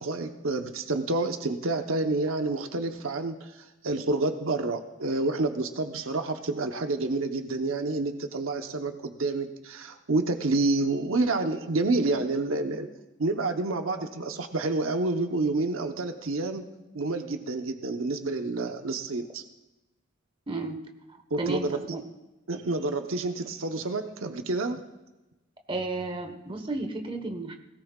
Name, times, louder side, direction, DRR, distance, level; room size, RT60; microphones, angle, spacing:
voice 1, 0.0-12.9 13.2-16.6 16.9-19.4 21.3-21.8 22.5-24.8, right 2 dB, 75° right, 6 dB, 0.9 m, -28 dB
voice 2, 20.5-20.8 21.1-22.0 25.7-27.6, right 2 dB, 25° right, 5 dB, 1.2 m, -33 dB
19.5 x 17.5 x 2.4 m, 1.0 s
head